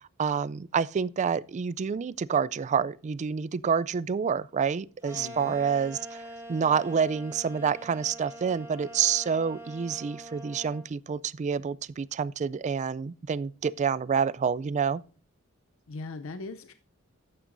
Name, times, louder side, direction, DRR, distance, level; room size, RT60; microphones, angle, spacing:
voice 1, 0.2-6.2 6.5-15.0, right 6 dB, 35° right, 0.3 m, -28 dB
sound 1, 5.0-10.9, right 1 dB, 10° right, 3.2 m, -44 dB
voice 2, 5.2-5.6 15.9-16.7, left 3 dB, 70° left, 0.6 m, -39 dB
12.0 x 8.8 x 2.6 m
head